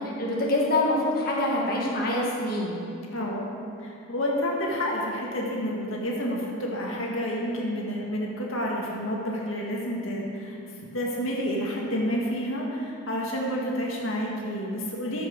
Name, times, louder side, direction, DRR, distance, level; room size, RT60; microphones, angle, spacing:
voice 1, 0.2-2.8, left 1 dB, 45° left, -4 dB, 1.8 m, -25 dB
voice 2, 3.1-3.5 3.8-10.6 10.9-15.3, equal, 80° left, -3 dB, 1.8 m, -29 dB
14.0 x 6.1 x 6.4 m, 2.6 s
head